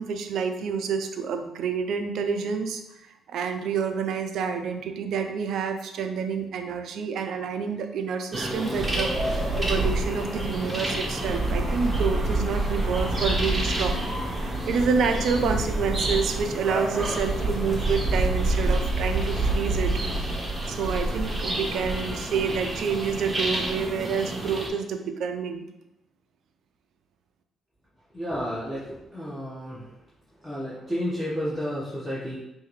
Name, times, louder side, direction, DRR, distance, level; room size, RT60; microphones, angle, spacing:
voice 1, 0.0-2.8 3.3-14.1 14.3-20.0 20.7-25.7, right 6 dB, 75° right, 7 dB, 0.5 m, -28 dB
sound 1, 8.3-24.7, right 1 dB, 25° right, 1.1 m, -27 dB
voice 2, 28.1-29.9 30.4-32.4, equal, 5° right, -10 dB, 1.3 m, -31 dB
5.6 x 2.6 x 3.1 m, 0.89 s
cardioid pair, 90°, 0 cm